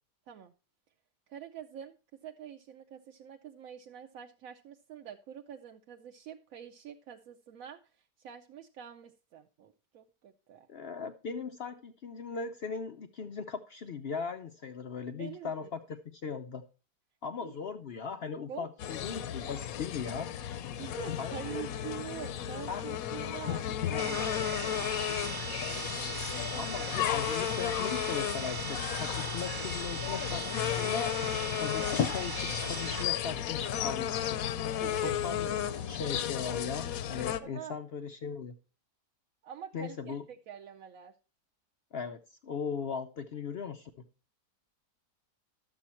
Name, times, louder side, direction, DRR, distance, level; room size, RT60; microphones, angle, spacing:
voice 1, 1.3-2.0 2.2-10.7 15.2-15.7 17.4-17.5 18.5-19.2 20.8-25.2 25.9-26.1 34.7-35.2 37.4-37.8 39.4-41.1, right 9 dB, 65° right, 3 dB, 0.9 m, -46 dB
voice 2, 10.7-16.6 17.2-20.3 21.2-21.6 22.7-22.8 26.5-31.1 31.5-34.4 35.0-38.5 39.7-40.2 41.9-43.9, left 6 dB, 85° left, 7 dB, 0.5 m, -38 dB
sound 1, 18.8-37.4, left 10 dB, 65° left, 1.0 m, -34 dB
sound 2, 24.0-33.0, right 4 dB, 45° right, 1.1 m, -39 dB
12.0 x 7.2 x 4.2 m, 0.34 s
omnidirectional pair, 1.8 m